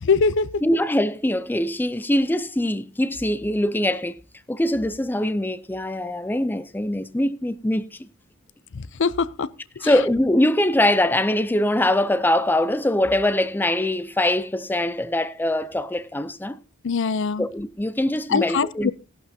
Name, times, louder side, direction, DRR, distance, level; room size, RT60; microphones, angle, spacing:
voice 1, 0.0-0.5 8.7-9.5 9.8-9.9 16.8-17.5 18.3-18.9, left 5 dB, 60° left, 0.5 m, -22 dB
voice 2, 0.6-4.2 4.5-8.1 9.8-16.6 17.4-18.9, left 1 dB, 10° left, 0.5 m, -23 dB
16.5 x 11.5 x 2.8 m
head